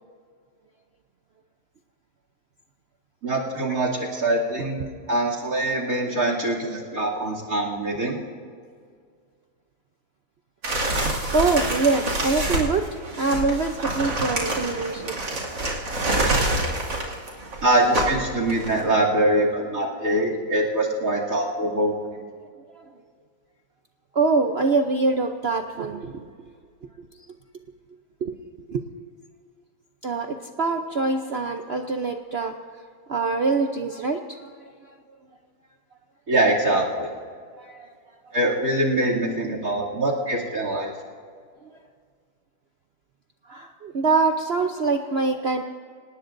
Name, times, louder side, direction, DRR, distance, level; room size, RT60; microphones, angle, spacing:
voice 1, 3.2-4.8 5.1-8.2 17.6-22.2 36.3-37.1 38.3-40.9, right 1 dB, 45° right, 0 dB, 3.1 m, -23 dB
sound 1, 10.6-18.8, right 1 dB, 60° right, 3.1 m, -26 dB
voice 2, 11.2-12.9 13.1-15.2 22.7-22.8 24.1-26.2 28.2-28.3 28.7-28.8 30.0-32.5 33.1-34.7 37.6-37.9 43.5-45.6, right 3 dB, 75° right, 5 dB, 0.5 m, -24 dB
26.5 x 18.5 x 2.6 m, 2.1 s
omnidirectional pair, 2.1 m